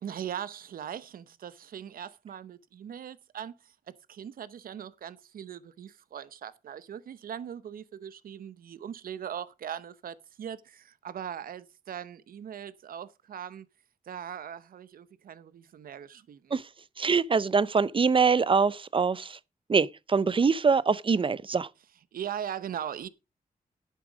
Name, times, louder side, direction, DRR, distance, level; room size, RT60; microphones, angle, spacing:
voice 1, 0.0-13.7 14.1-16.6 22.1-23.1, right 9 dB, 90° right, 0.8 m, -40 dB
voice 2, 17.0-19.4 19.7-21.7, right 5 dB, 35° right, 0.6 m, -24 dB
10.5 x 8.4 x 5.1 m
cardioid pair, 85°, 14 cm